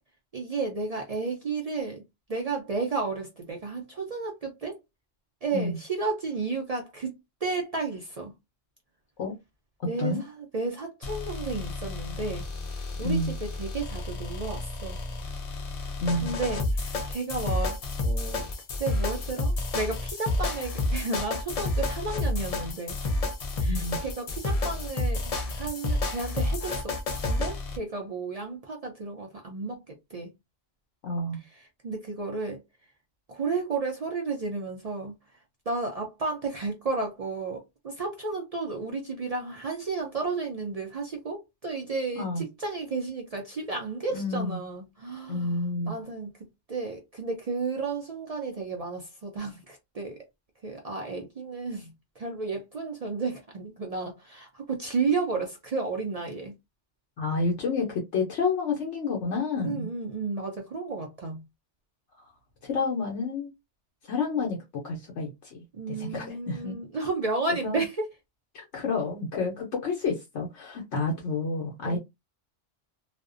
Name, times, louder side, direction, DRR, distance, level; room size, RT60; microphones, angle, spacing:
voice 1, 0.3-2.0 2.3-4.8 5.4-7.1 7.4-8.3 9.9-15.0 16.2-18.5 18.8-23.0 23.6-27.0 27.2-30.3 31.3-32.6 33.3-50.3 50.6-56.5 59.6-61.4 65.7-68.1 71.8-72.0, right 3 dB, 60° right, 0.4 m, -33 dB
voice 2, 9.8-10.2 13.0-13.3 16.0-16.3 23.7-24.0 31.0-31.4 42.2-42.4 44.1-44.6 45.3-45.9 57.2-59.9 62.6-63.5 64.1-65.6 65.9-66.8 67.6-67.8 68.5-72.0, left 3 dB, 75° left, 1.0 m, -29 dB
sound 1, 11.0-27.8, left 2 dB, 55° left, 0.4 m, -30 dB
2.5 x 2.1 x 2.4 m
omnidirectional pair, 1.2 m